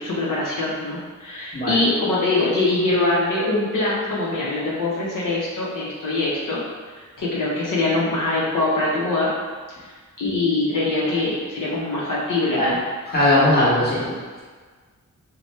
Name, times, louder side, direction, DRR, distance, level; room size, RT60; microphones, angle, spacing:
voice 1, 0.0-6.6 6.9-9.3 9.8-12.8, left 2 dB, 80° left, -6 dB, 0.7 m, -23 dB
voice 2, 13.1-14.1, left 1 dB, 30° left, -9 dB, 1.2 m, -19 dB
2.9 x 2.2 x 4.1 m, 1.5 s
wide cardioid pair, 105°, 31 cm